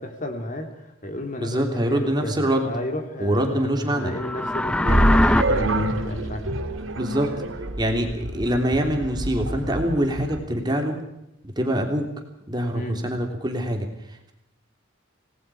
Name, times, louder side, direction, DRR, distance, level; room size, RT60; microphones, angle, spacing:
voice 1, 0.0-6.5 12.7-13.0, left 1 dB, 40° left, 4 dB, 3.5 m, -32 dB
voice 2, 1.4-2.7 3.2-4.1 7.0-7.3 7.8-11.0 11.4-12.1 12.5-14.3, equal, 20° right, 3 dB, 3.2 m, -24 dB
sound 1, 4.0-5.4, left 1 dB, 5° left, 0.7 m, -21 dB
sound 2, 4.9-10.4, right 1 dB, 75° right, 2.7 m, -26 dB
28.0 x 19.5 x 5.0 m, 0.85 s
head